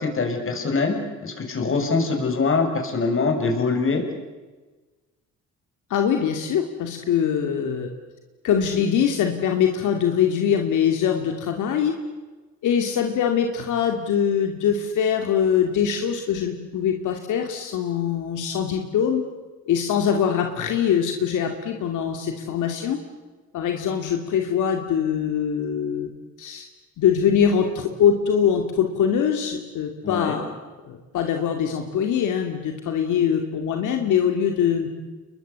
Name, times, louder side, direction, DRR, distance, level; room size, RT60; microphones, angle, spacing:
voice 1, 0.0-4.0 30.0-30.4, left 4 dB, 45° left, 4 dB, 6.6 m, -23 dB
voice 2, 5.9-7.9 8.4-11.9 12.6-19.2 19.7-23.0 23.5-26.1 26.4-26.6 27.0-30.5 30.8-34.9, left 8 dB, 80° left, 4 dB, 2.6 m, -23 dB
29.0 x 22.0 x 8.2 m, 1.3 s
cardioid pair, 90°, 30 cm